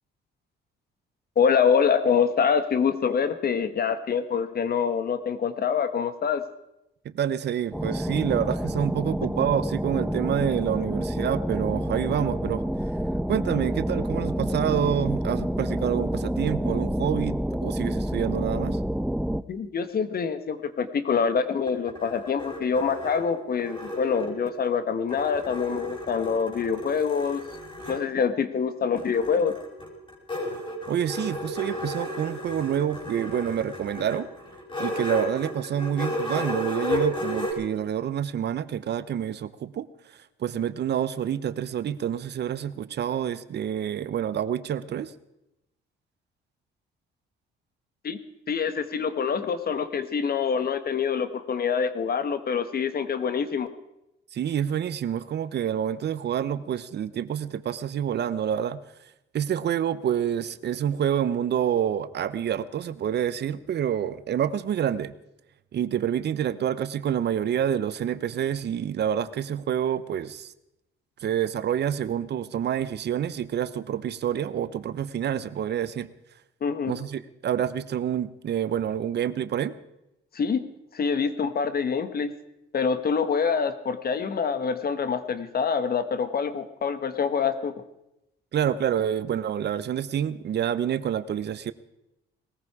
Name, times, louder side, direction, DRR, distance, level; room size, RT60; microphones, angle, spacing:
voice 1, 1.3-6.4 19.5-27.4 27.9-29.5 48.0-48.2 48.5-53.7 76.6-76.9 80.3-80.6 80.9-82.3 82.7-87.7, left 6 dB, 50° left, 11 dB, 1.4 m, -25 dB
voice 2, 7.0-12.6 13.3-18.8 30.9-34.3 34.8-45.1 54.3-58.8 59.3-65.1 65.7-70.5 71.2-76.1 76.8-79.7 88.5-91.7, right 9 dB, 60° right, 15 dB, 0.8 m, -27 dB
sound 1, 7.7-19.4, equal, 5° right, 0.5 m, -28 dB
sound 2, 21.4-24.7 25.1-28.0 29.0-37.5, equal, 25° left, 5.7 m, -33 dB
19.5 x 14.5 x 4.9 m, 0.88 s
cardioid pair, 90°, 20 cm